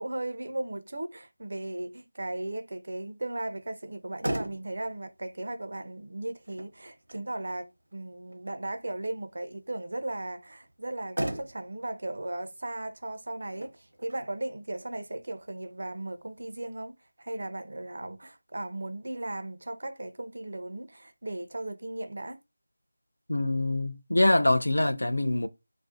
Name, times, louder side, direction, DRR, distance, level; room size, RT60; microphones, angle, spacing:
voice 1, 0.0-7.7 7.9-16.9 17.2-22.4, right 1 dB, 50° right, 0.4 m, -36 dB
Motor vehicle (road), 3.8-16.8, right 1 dB, 90° right, 0.7 m, -41 dB
voice 2, 23.3-25.5, left 1 dB, 75° left, 0.4 m, -24 dB
2.4 x 2.0 x 2.6 m
figure-of-eight pair, 175°, 0 cm